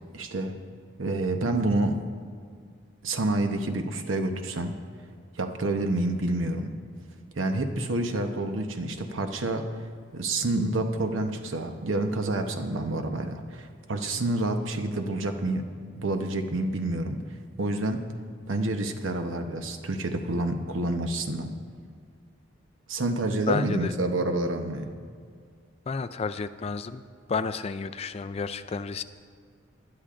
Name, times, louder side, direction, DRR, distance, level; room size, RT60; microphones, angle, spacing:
voice 1, 0.1-0.6 1.0-2.0 3.0-4.8 5.4-6.7 7.4-9.7 10.1-15.6 16.0-17.2 17.6-18.0 18.5-21.5 22.9-24.9, right 2 dB, 80° right, 6 dB, 0.9 m, -28 dB
voice 2, 23.5-24.0 25.9-27.0 27.3-29.0, left 4 dB, 30° left, 11 dB, 0.3 m, -31 dB
20.5 x 11.5 x 2.5 m, 2.1 s
head